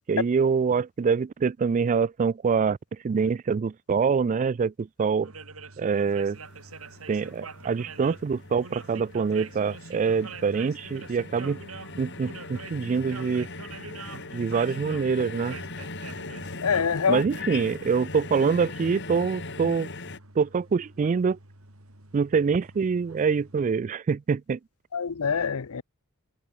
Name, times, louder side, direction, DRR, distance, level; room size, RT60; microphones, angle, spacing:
voice 1, 0.1-2.8 3.0-5.3 5.8-6.4 7.1-11.6 12.0-13.5 14.1-15.6 17.1-19.9 20.4-21.4 22.1-24.6, right 5 dB, 35° right, 0.3 m, -25 dB
sound 1, 5.2-23.7, right 4 dB, 75° right, 4.8 m, -45 dB
sound 2, 5.9-20.2, left 3 dB, 55° left, 6.3 m, -40 dB
voice 2, 16.6-17.2 24.9-25.8, left 6 dB, 85° left, 0.7 m, -25 dB
head